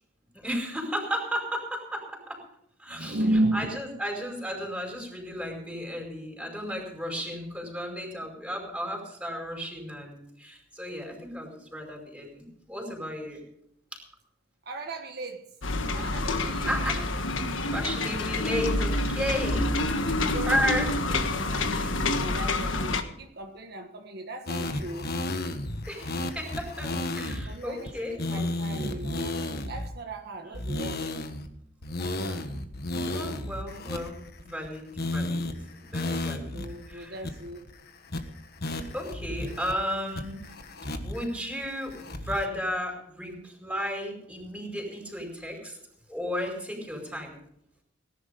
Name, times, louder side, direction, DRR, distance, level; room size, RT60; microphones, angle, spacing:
voice 1, 0.3-2.4 2.8-3.2 3.5-13.4 13.9-14.0 16.7-17.1 17.7-21.2 25.9-28.4 30.4-30.6 32.0-36.6 36.9-37.2 38.9-40.4 41.0-45.8 46.1-47.4, equal, 5° right, 1 dB, 5.1 m, -34 dB
voice 2, 2.9-3.8 14.6-15.5 15.9-16.7 19.9-25.1 27.5-27.9 28.2-31.2 36.5-37.8, right 1 dB, 55° right, 3 dB, 1.4 m, -34 dB
sound 1, 15.6-23.0, left 2 dB, 85° left, 1.5 m, -27 dB
sound 2, 24.5-27.5 27.9-28.0 28.2-29.9 30.5-31.5 31.8-34.7 35.0-35.5 35.9-36.7 36.9-37.0 37.2-37.7 38.1-38.2 38.6-39.7 40.2-41.3 41.6-42.5, left 2 dB, 55° left, 1.5 m, -33 dB
18.5 x 11.0 x 5.2 m, 0.74 s
head